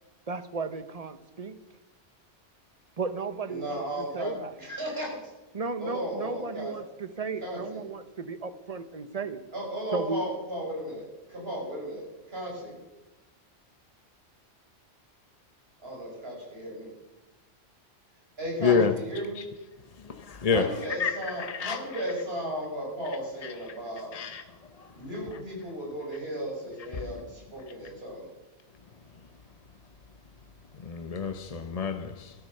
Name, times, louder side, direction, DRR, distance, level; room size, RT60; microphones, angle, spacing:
voice 1, 0.3-1.5 3.0-4.5 5.5-9.4 9.9-10.2, right 4 dB, 35° right, 1.0 m, -35 dB
voice 2, 3.4-5.2 5.8-6.7 7.4-7.8 9.5-12.8 15.8-16.9 18.4-19.4 20.5-24.1 25.0-28.3, equal, 60° right, 6.2 m, -35 dB
voice 3, 18.6-18.9 20.0-20.7 21.0-21.8 23.4-23.5 24.1-24.4 24.8-24.9 26.9-27.1 30.8-32.3, left 5 dB, 40° left, 0.8 m, -28 dB
15.5 x 12.5 x 6.7 m
omnidirectional pair, 1.1 m